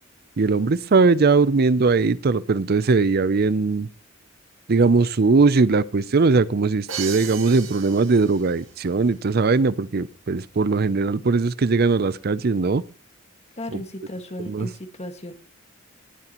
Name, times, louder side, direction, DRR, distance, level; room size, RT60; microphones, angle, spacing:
voice 1, 0.4-3.9 4.7-12.8 13.7-13.8 14.5-14.7, right 4 dB, 50° right, 0.5 m, -20 dB
Crash cymbal, 6.9-8.7, right 8 dB, 85° right, 2.1 m, -35 dB
voice 2, 13.6-15.3, left 1 dB, 35° left, 1.8 m, -35 dB
19.5 x 7.7 x 3.0 m
head